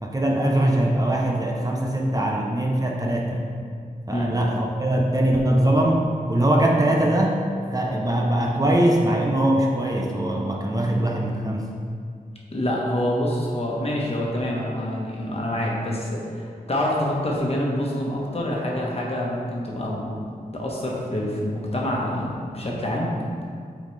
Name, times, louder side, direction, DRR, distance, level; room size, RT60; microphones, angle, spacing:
voice 1, 0.0-3.4 4.1-7.4 7.7-11.7, right 1 dB, 25° right, -1 dB, 0.6 m, -22 dB
voice 2, 12.5-20.2 20.5-23.1, left 1 dB, 40° left, -3 dB, 1.2 m, -26 dB
8.5 x 4.1 x 3.2 m, 2.2 s
wide cardioid pair, 100°, 15 cm